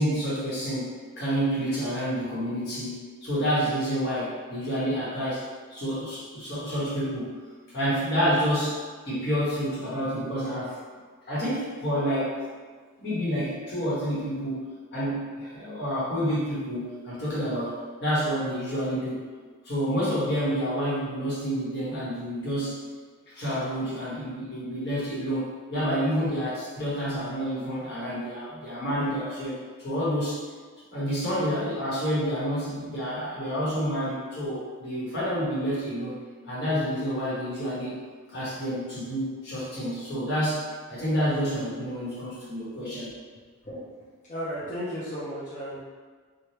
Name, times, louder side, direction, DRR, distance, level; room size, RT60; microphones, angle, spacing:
voice 1, 0.0-7.3 7.7-8.8 9.0-10.8 11.3-12.3 13.0-14.6 14.9-19.2 19.6-22.8 23.3-30.4 30.9-36.2 36.5-38.0 38.3-43.1, equal, 50° left, -9 dB, 1.1 m, -29 dB
voice 2, 44.3-45.8, equal, 30° left, -10 dB, 0.5 m, -34 dB
3.2 x 2.2 x 2.8 m, 1.5 s
head